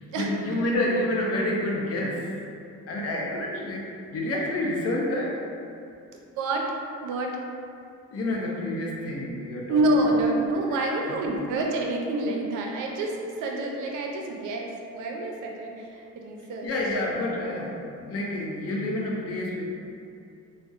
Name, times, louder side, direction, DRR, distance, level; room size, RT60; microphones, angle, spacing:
voice 1, 0.0-2.3 2.9-5.4 8.1-9.8 10.1-10.2 10.7-11.5 16.6-19.6, left 1 dB, 50° left, -2 dB, 0.5 m, -29 dB
voice 2, 7.0-7.4 9.7-16.7, right 2 dB, 80° right, 0 dB, 0.4 m, -27 dB
2.6 x 2.0 x 2.3 m, 2.4 s
cardioid pair, 90°, 30 cm